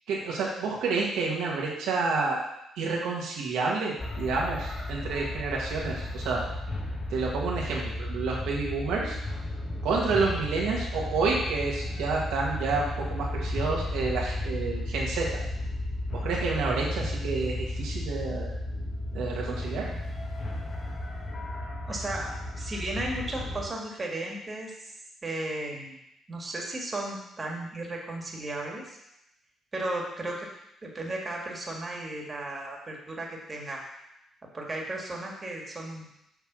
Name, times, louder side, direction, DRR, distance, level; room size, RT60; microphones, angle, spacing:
voice 1, 0.1-2.4 2.7-6.4 7.1-9.2 9.8-15.3 16.1-18.5 19.1-19.9, right 4 dB, 90° right, -3 dB, 1.4 m, -29 dB
sound 1, 4.0-23.7, left 1 dB, 40° left, 1.3 m, -34 dB
voice 2, 21.8-24.9 25.2-26.0 26.3-29.0 29.7-30.5 30.8-33.8 34.5-36.1, right 1 dB, 30° right, -1 dB, 1.6 m, -35 dB
6.6 x 3.5 x 6.0 m, 0.83 s
cardioid pair, 90°, 0 cm